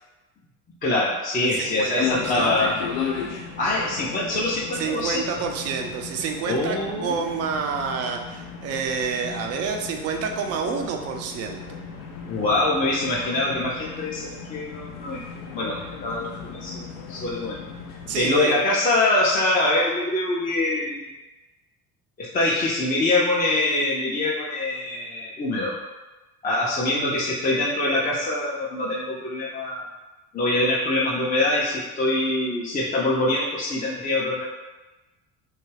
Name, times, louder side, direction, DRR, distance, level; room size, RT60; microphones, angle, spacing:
voice 1, 0.8-2.8 3.6-5.2 6.5-7.2 12.3-15.2 15.5-17.6 18.1-21.1 22.2-25.8 26.4-29.8 30.3-34.5, left 2 dB, 20° left, -6 dB, 0.5 m, -24 dB
voice 2, 1.4-2.6 4.7-6.8 7.0-11.8 18.1-18.6, right 5 dB, 35° right, 4 dB, 0.4 m, -28 dB
sound 1, 2.0-18.3, left 6 dB, 70° left, 0.6 m, -35 dB
2.4 x 2.2 x 3.2 m, 1.1 s
hypercardioid pair, 60°, 46 cm